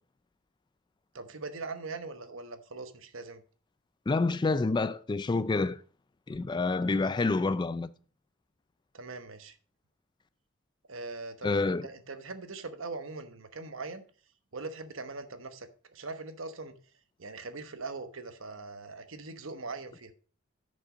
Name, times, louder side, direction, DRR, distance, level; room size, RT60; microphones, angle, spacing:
voice 1, 1.1-3.4 8.9-9.6 10.9-14.0 14.5-16.8 17.2-20.1, right 3 dB, 65° right, 1.1 m, -41 dB
voice 2, 4.1-5.8 6.3-7.9 11.4-11.9, left 3 dB, 20° left, 0.3 m, -28 dB
10.5 x 5.4 x 5.1 m
head